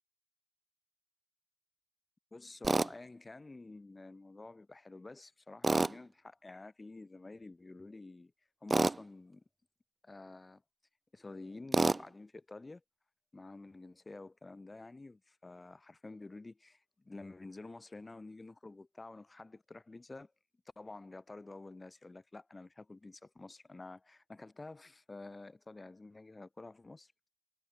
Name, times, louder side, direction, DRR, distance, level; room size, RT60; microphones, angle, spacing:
voice 1, 2.3-8.3 8.6-9.4 10.0-10.6 11.1-12.8 13.3-20.3 20.8-27.1, left 2 dB, 15° left, 8.0 m, -50 dB
Tools, 2.6-2.9 5.6-6.0 8.7-9.0 11.7-12.0, right 3 dB, 15° right, 2.2 m, -28 dB
hypercardioid pair, 70°, 0 cm